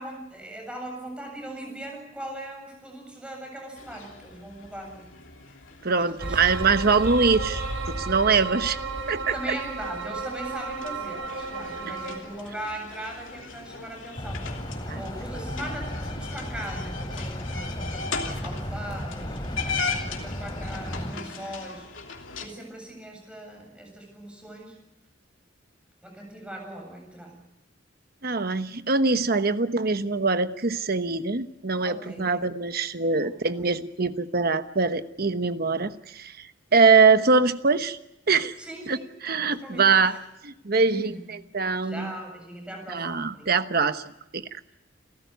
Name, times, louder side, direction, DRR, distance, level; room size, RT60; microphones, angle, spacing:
voice 1, 0.0-5.1 6.0-6.4 9.3-14.4 14.9-18.0 18.4-21.9 22.4-24.8 26.0-27.3 31.8-32.3 33.1-33.6 38.6-39.1 39.6-40.0 40.9-41.3 41.8-43.5, right 1 dB, 5° right, 2 dB, 7.9 m, -39 dB
sound 1, 3.8-22.5, left 4 dB, 80° left, 3.1 m, -39 dB
voice 2, 5.8-8.8 9.1-9.3 14.9-15.0 28.2-38.0 38.3-38.5 38.9-40.2 40.4-42.1 42.9-44.0 44.3-44.5, right 4 dB, 50° right, 10 dB, 1.1 m, -23 dB
sound 2, 6.2-12.2, right 3 dB, 90° right, 4.9 m, -33 dB
sound 3, 14.2-21.1, equal, 20° left, 2.9 m, -34 dB
29.0 x 14.0 x 9.4 m, 0.90 s
head